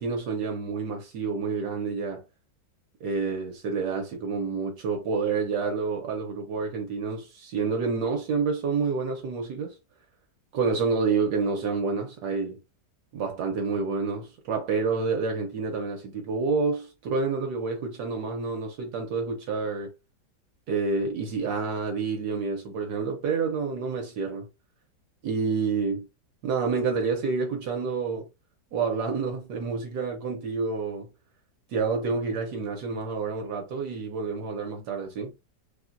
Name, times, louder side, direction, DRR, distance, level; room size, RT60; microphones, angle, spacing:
voice 1, 0.0-2.2 3.0-9.7 10.5-12.6 13.1-19.9 20.7-24.5 25.2-26.1 26.4-28.3 28.7-31.1 31.7-35.3, right 4 dB, 75° right, 1.1 m, -28 dB
2.9 x 2.1 x 2.5 m
omnidirectional pair, 1.9 m